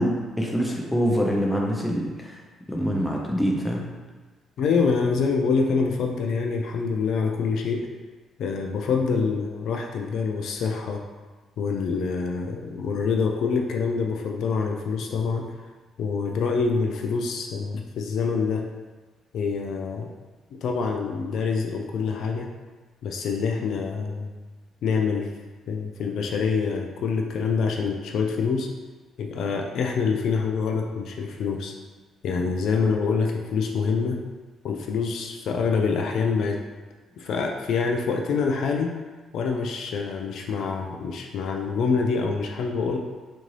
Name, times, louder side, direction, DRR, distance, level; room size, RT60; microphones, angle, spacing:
voice 1, 0.0-2.4 2.7-3.9, equal, 10° left, -1 dB, 0.6 m, -25 dB
voice 2, 4.6-7.9 8.4-11.0 11.6-15.4 16.0-18.7 19.3-20.1 20.6-22.5 23.0-24.3 24.8-25.3 25.7-28.7 29.2-31.7 32.2-34.2 34.6-36.6 37.2-38.9 39.3-43.0, left 5 dB, 70° left, 2 dB, 0.3 m, -26 dB
3.6 x 2.6 x 3.1 m, 1.3 s
cardioid pair, 105°, 0 cm